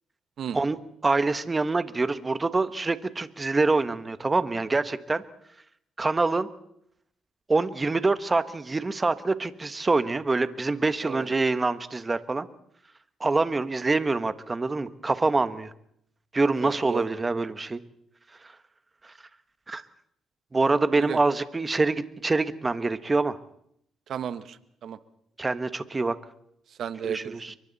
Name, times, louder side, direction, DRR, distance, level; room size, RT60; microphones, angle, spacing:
voice 1, 1.0-5.2 6.0-6.5 7.5-12.5 13.2-15.7 16.3-17.8 19.0-19.1 19.7-19.8 20.5-23.4 25.4-26.2 27.1-27.6, right 3 dB, 25° right, 11 dB, 1.4 m, -25 dB
voice 2, 16.6-17.1 20.9-21.2 24.1-25.0 26.7-27.6, right 8 dB, 65° right, 12 dB, 1.2 m, -34 dB
29.0 x 23.5 x 4.2 m, 0.75 s
cardioid pair, 90°, 0 cm